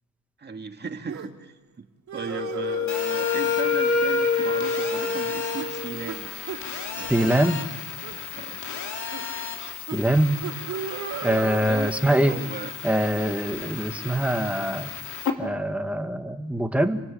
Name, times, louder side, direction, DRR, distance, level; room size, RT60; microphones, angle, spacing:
voice 1, 0.4-1.9 2.1-6.3 7.0-7.6 8.4-8.6 11.6-12.8, right 5 dB, 35° right, 5 dB, 2.0 m, -37 dB
sound 1, 1.1-1.3 2.1-2.9 3.9-4.2 4.5-4.6 5.0-5.2 5.6-5.7 6.1-6.2 6.5-6.6 7.3-7.5 8.0-8.2 9.1-9.2 9.9-10.0 10.4-11.6, right 8 dB, 65° right, 3.1 m, -36 dB
Wind instrument woodwind instrument, 2.3-6.2, left 5 dB, 50° left, 3.3 m, -26 dB
Telephone, 2.9-15.3, left 6 dB, 65° left, 2.9 m, -35 dB
voice 2, 7.1-7.6 9.9-10.4 11.2-12.3 12.8-14.9 15.4-17.0, right 1 dB, 5° right, 5 dB, 1.8 m, -23 dB
29.0 x 17.5 x 8.6 m, 1.1 s
cardioid pair, 100°, 32 cm